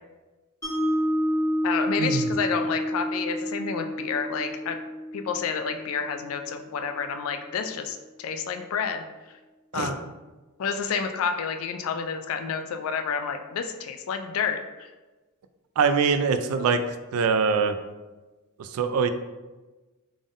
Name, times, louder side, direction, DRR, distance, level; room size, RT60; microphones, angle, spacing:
Mallet percussion, 0.6-6.8, equal, 15° left, 1.4 m, -29 dB
voice 1, 1.6-4.8 5.1-9.0 9.7-10.2 10.6-14.9, left 6 dB, 65° left, 6 dB, 0.3 m, -30 dB
voice 2, 15.8-17.8 18.6-19.1, right 5 dB, 70° right, 10 dB, 0.3 m, -23 dB
3.6 x 3.5 x 2.5 m, 1.2 s
head